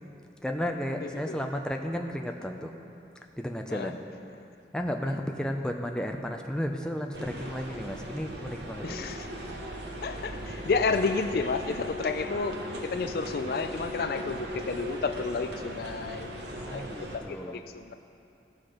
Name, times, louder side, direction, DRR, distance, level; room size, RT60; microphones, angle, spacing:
voice 1, 0.4-2.7 3.4-4.0 4.7-9.1 16.5-17.6, equal, 5° left, 2 dB, 0.5 m, -33 dB
voice 2, 1.0-1.5 3.7-3.9 8.8-9.3 10.0-16.3 16.7-16.8 17.1-17.9, left 4 dB, 55° left, 9 dB, 0.3 m, -31 dB
sound 1, 7.1-17.2, equal, 70° right, 1.1 m, -38 dB
16.0 x 6.0 x 5.0 m, 2.6 s
head